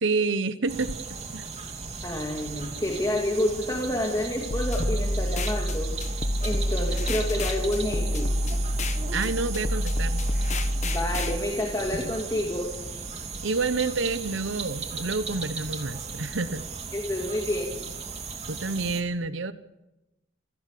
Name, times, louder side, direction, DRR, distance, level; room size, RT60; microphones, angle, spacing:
voice 1, 0.0-0.9 1.3-1.5 9.1-10.2 13.4-16.6 18.5-19.5, right 3 dB, 70° right, 12 dB, 0.9 m, -28 dB
sound 1, 0.7-19.0, right 4 dB, 35° right, 2.8 m, -37 dB
voice 2, 2.0-5.9 6.4-8.3 9.2-9.3 10.8-12.7 16.9-17.7, left 1 dB, 20° left, -1 dB, 2.7 m, -29 dB
sound 2, 4.5-11.4, equal, 35° left, 1.0 m, -27 dB
28.0 x 17.5 x 6.9 m, 1.0 s
head